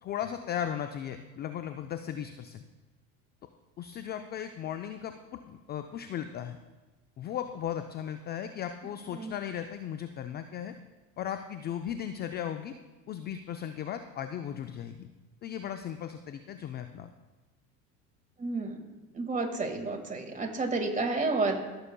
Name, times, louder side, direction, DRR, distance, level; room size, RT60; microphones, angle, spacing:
voice 1, 0.0-2.6 3.8-6.6 7.2-10.7 11.2-12.7 13.1-15.1 15.4-17.1, left 9 dB, 25° left, 8 dB, 0.3 m, -36 dB
voice 2, 18.4-18.8 19.1-21.6, right 3 dB, 15° right, 3 dB, 1.8 m, -30 dB
15.0 x 6.9 x 2.3 m, 1.2 s
hypercardioid pair, 80°, 46 cm